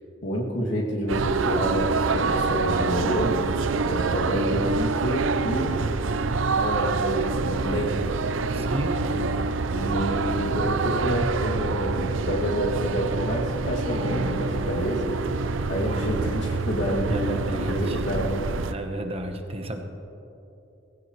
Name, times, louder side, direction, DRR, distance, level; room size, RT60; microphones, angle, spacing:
voice 1, 0.2-3.5 3.8-5.8 6.5-8.0 9.1-9.2 9.7-15.2 15.7-18.4, equal, 70° left, -3 dB, 2.5 m, -28 dB
sound 1, 1.1-18.7, right 4 dB, 85° right, 0.6 m, -26 dB
voice 2, 8.5-9.0 17.1-18.0 18.7-19.8, right 1 dB, 30° right, 5 dB, 1.1 m, -32 dB
21.0 x 15.5 x 3.2 m, 3.0 s
head